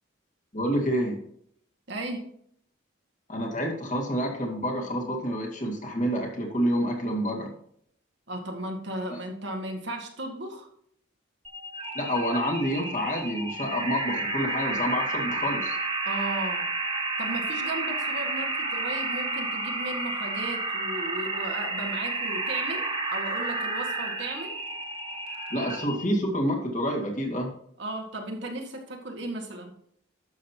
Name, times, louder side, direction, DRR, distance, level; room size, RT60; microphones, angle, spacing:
voice 1, 0.5-1.2 3.3-7.5 11.9-15.8 25.5-27.5, equal, 40° left, 0 dB, 2.1 m, -28 dB
voice 2, 1.9-2.3 8.3-10.7 16.1-16.7 17.2-24.6 27.8-29.7, right 2 dB, 60° right, 2 dB, 1.7 m, -35 dB
sound 1, 11.4-26.0, right 2 dB, 30° right, 1.8 m, -31 dB
11.5 x 7.5 x 2.9 m, 0.67 s
head